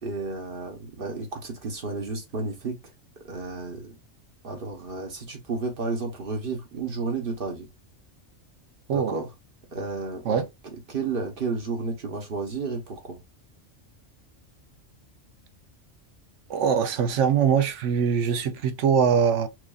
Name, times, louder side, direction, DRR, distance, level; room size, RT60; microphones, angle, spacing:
voice 1, 0.0-2.8 3.2-4.0 4.4-7.7 8.9-9.3 9.7-10.4 10.9-13.2, right 3 dB, 50° right, 1.2 m, -32 dB
voice 2, 16.5-19.5, right 7 dB, 75° right, 1.0 m, -22 dB
6.1 x 2.6 x 2.3 m
omnidirectional pair, 1.3 m